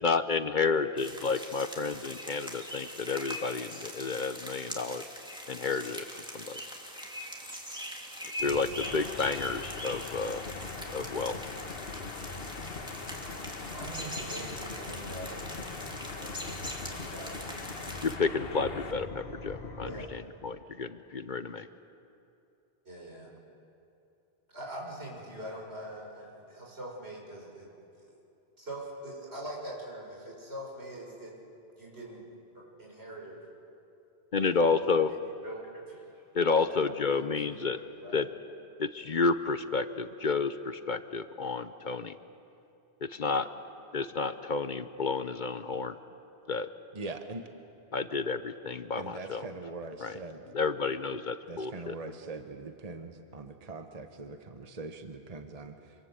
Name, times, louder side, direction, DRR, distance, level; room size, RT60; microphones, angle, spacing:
voice 1, 0.0-5.0 5.5-6.1 6.3-6.6 8.4-10.4 10.9-11.5 18.0-21.7 34.3-35.1 36.3-37.8 38.1-38.3 38.8-42.2 43.0-43.5 43.9-46.0 46.5-46.7 47.9-49.5 50.0-50.2 50.5-52.0, left 4 dB, 50° left, 11 dB, 1.0 m, -30 dB
sound 1, 1.0-18.1, equal, 5° right, 2.9 m, -42 dB
sound 2, 8.4-20.1, left 3 dB, 90° left, 2.0 m, -44 dB
sound 3, 8.8-18.9, left 4 dB, 65° left, 1.4 m, -43 dB
voice 2, 13.7-15.8 16.1-18.7 19.8-20.2 22.9-23.3 24.5-27.7 28.1-28.2 28.6-31.3 31.8-32.2 32.5-33.4 34.6-36.2 37.1-37.3 38.0-38.2, right 1 dB, 85° right, -2 dB, 7.1 m, -43 dB
voice 3, 46.9-47.4 49.0-50.4 51.5-55.9, right 3 dB, 40° right, 6 dB, 1.3 m, -42 dB
27.0 x 26.5 x 8.1 m, 2.7 s
omnidirectional pair, 1.1 m